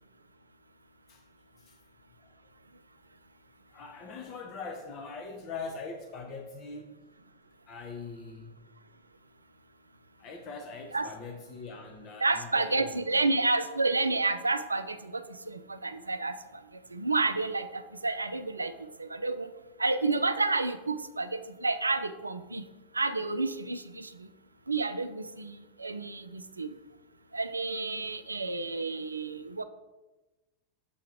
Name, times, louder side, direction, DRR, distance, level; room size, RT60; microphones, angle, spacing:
voice 1, 3.7-6.9 7.7-8.5 10.2-13.2, left 4 dB, 35° left, 4 dB, 0.6 m, -42 dB
voice 2, 12.2-16.4 16.9-18.7 19.0-19.5 19.8-22.6 22.9-24.3 24.7-26.7 27.3-29.6, right 3 dB, 80° right, 11 dB, 0.3 m, -30 dB
6.8 x 2.8 x 5.0 m, 1.1 s
figure-of-eight pair, 90°, 0 cm